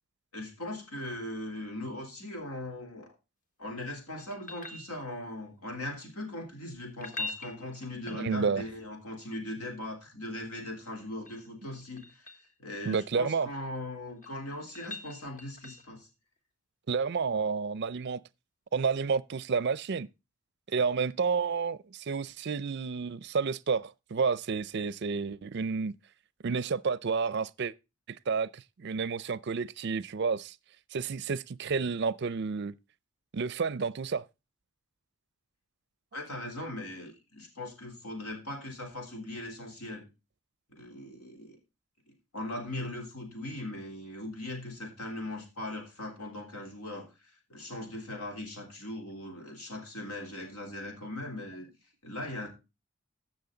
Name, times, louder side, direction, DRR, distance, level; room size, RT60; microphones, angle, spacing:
voice 1, 0.3-3.1 3.6-16.1 36.1-40.1 40.7-41.6 42.3-51.7 52.0-52.5, left 1 dB, 85° left, 3.5 m, -39 dB
sound 1, 4.2-5.4 6.9-8.7 10.9-12.5 13.9-16.0 18.8-18.9, left 2 dB, 35° left, 1.3 m, -43 dB
voice 2, 8.1-8.6 12.9-13.5 16.9-18.2 18.7-20.1 20.7-25.9 26.4-27.7 28.1-30.6 30.9-32.7 33.3-34.3, right 5 dB, 50° right, 0.4 m, -30 dB
15.5 x 6.3 x 3.8 m
head